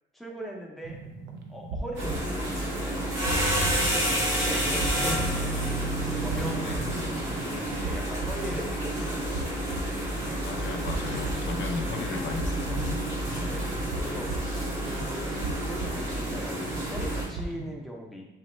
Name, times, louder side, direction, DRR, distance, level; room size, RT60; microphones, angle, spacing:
voice 1, 0.1-1.0 1.5-3.2 4.4-5.5 6.1-9.4 13.4-18.3, equal, ahead, -1 dB, 0.6 m, -40 dB
sound 1, 0.8-17.7, right 2 dB, 75° right, 0.4 m, -38 dB
sound 2, 1.9-17.2, right 1 dB, 90° right, 1.3 m, -30 dB
sound 3, 5.0-9.4, right 1 dB, 30° left, 0.9 m, -37 dB
voice 2, 10.4-13.1, left 5 dB, 65° left, 3 dB, 0.4 m, -36 dB
3.1 x 2.1 x 3.1 m, 0.99 s
cardioid pair, 90°, 20 cm